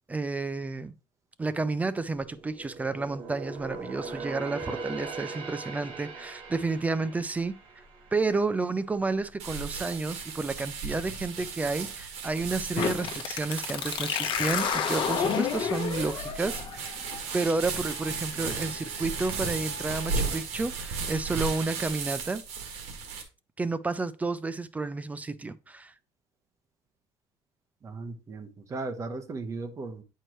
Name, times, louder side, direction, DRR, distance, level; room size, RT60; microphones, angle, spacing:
voice 1, 0.1-0.9 1.4-7.6 8.1-17.0 17.3-22.4 23.6-25.9, right 3 dB, 15° right, 0.4 m, -31 dB
sound 1, 1.9-9.3 9.7-9.9 10.5-11.2 11.5-11.6, right 4 dB, 55° right, 1.6 m, -41 dB
sound 2, 9.4-23.2, right 5 dB, 85° right, 1.7 m, -35 dB
sound 3, 12.8-20.3, left 7 dB, 50° left, 1.0 m, -32 dB
voice 2, 27.8-30.0, right 3 dB, 30° right, 1.0 m, -36 dB
9.0 x 4.6 x 3.0 m
cardioid pair, 140°, 11 cm